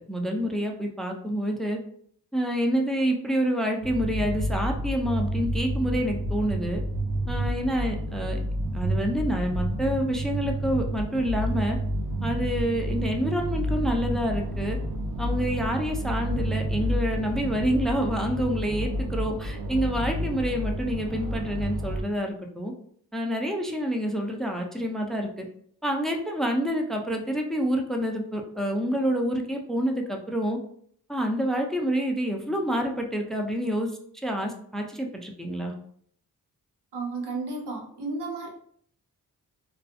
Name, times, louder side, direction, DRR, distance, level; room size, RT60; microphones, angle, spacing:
voice 1, 0.1-1.8 2.3-6.8 7.3-8.4 8.7-11.8 12.2-14.8 15.2-22.7 23.1-25.5 25.8-30.6 31.1-33.9 34.2-35.7, equal, ahead, 3 dB, 0.4 m, -27 dB
sound 1, 3.8-22.0, right 1 dB, 50° right, 0.7 m, -30 dB
voice 2, 36.9-38.5, right 3 dB, 85° right, 1 dB, 0.7 m, -33 dB
2.4 x 2.3 x 2.6 m, 0.63 s
cardioid pair, 55°, 39 cm